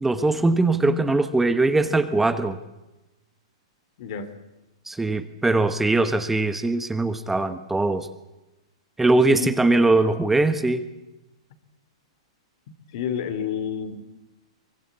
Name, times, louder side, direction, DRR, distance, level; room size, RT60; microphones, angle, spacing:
voice 1, 0.0-2.6 4.9-8.1 9.0-10.8, right 2 dB, 5° right, 11 dB, 1.2 m, -21 dB
voice 2, 4.0-4.3 9.3-9.5 12.9-14.1, left 8 dB, 55° left, 10 dB, 2.9 m, -29 dB
23.5 x 21.0 x 8.3 m, 0.99 s
hypercardioid pair, 125°, 3 cm